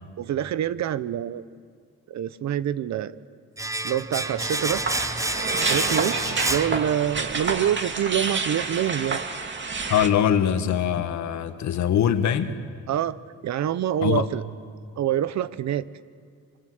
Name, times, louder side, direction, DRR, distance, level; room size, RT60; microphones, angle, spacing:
voice 1, 0.2-1.4 2.1-3.2 3.8-4.8 5.7-9.2 12.9-13.2 13.4-14.4 15.0-15.9, right 10 dB, 65° right, 15 dB, 1.0 m, -26 dB
Domestic sounds home sounds, 3.6-7.4 7.6-7.8, right 2 dB, 10° right, 0.8 m, -29 dB
sound 1, 4.2-10.1, right 4 dB, 40° right, 2.5 m, -29 dB
voice 2, 9.9-12.5 14.0-14.3, left 9 dB, 70° left, 9 dB, 1.8 m, -22 dB
26.0 x 25.5 x 7.9 m, 2.1 s
cardioid pair, 90°, 30 cm